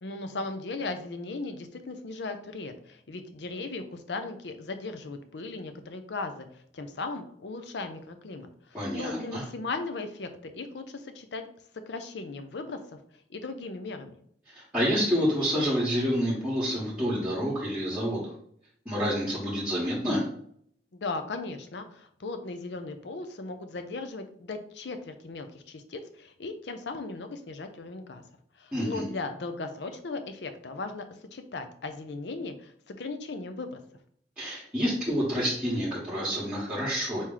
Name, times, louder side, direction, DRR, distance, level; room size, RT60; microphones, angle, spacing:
voice 1, 0.0-6.5 6.7-11.5 11.9-13.0 13.3-14.2 20.9-28.2 28.6-33.8, left 3 dB, 70° left, 8 dB, 0.6 m, -37 dB
voice 2, 8.7-9.4 14.5-18.2 18.8-20.2 28.7-29.0 34.4-37.3, equal, 10° right, -7 dB, 1.3 m, -28 dB
4.2 x 3.1 x 3.8 m, 0.65 s
head